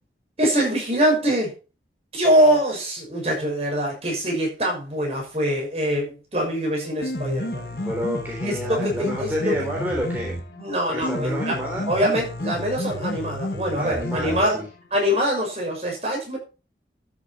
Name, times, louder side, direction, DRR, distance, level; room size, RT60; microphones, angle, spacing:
voice 1, 0.4-1.5 2.1-7.7 8.4-9.5 10.6-11.6 11.9-14.6 14.9-16.4, equal, 35° right, 0 dB, 6.1 m, -23 dB
Piano, 6.8-14.8, left 1 dB, 65° left, 2.0 m, -31 dB
voice 2, 7.7-10.4 10.9-11.9 13.8-14.7, equal, 10° right, -3 dB, 3.5 m, -29 dB
13.0 x 7.8 x 4.3 m, 0.32 s
head